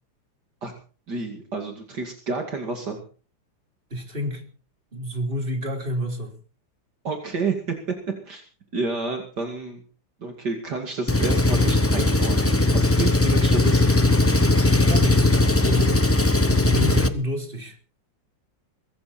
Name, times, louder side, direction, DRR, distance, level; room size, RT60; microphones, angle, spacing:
voice 1, 1.1-3.0 7.0-7.7 8.2-8.4 8.7-9.8 10.2-14.0, right 4 dB, 60° right, 3 dB, 3.0 m, -30 dB
voice 2, 3.9-4.5 4.9-6.3 14.8-15.3 15.6-16.1 16.6-17.8, equal, 25° right, 3 dB, 4.2 m, -29 dB
Engine, 11.1-17.1, left 2 dB, 10° left, 0.6 m, -19 dB
22.5 x 14.0 x 4.4 m, 0.39 s
omnidirectional pair, 2.1 m